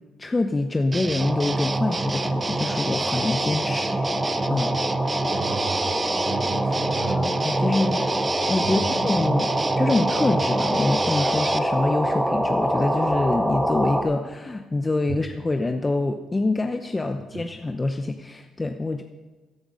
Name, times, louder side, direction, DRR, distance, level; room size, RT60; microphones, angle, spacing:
voice 1, 0.2-4.0 4.5-4.7 7.4-8.0 8.5-9.5 9.8-19.0, left 2 dB, 20° left, 6 dB, 0.7 m, -25 dB
sound 1, 0.9-11.6, right 3 dB, 30° right, 0.6 m, -28 dB
sound 2, 1.2-14.0, right 1 dB, 10° right, 1.8 m, -26 dB
voice 2, 5.3-6.0 6.2-7.8 8.6-8.9 15.1-15.2, right 4 dB, 85° right, -4 dB, 2.8 m, -34 dB
13.5 x 11.5 x 5.3 m, 1.2 s
cardioid pair, 90°, 0 cm